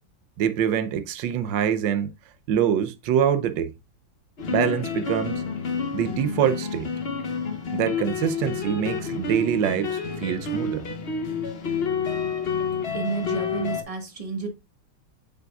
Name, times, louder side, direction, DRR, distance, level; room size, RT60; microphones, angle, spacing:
voice 1, 0.4-2.1 2.5-3.7 4.5-5.4 5.9-6.9 7.7-10.8, right 9 dB, 80° right, 1.4 m, -25 dB
sound 1, 4.4-13.8, left 5 dB, 50° left, 0.7 m, -29 dB
voice 2, 12.9-14.5, right 4 dB, 20° right, 1.2 m, -30 dB
8.9 x 5.3 x 2.3 m
omnidirectional pair, 2.1 m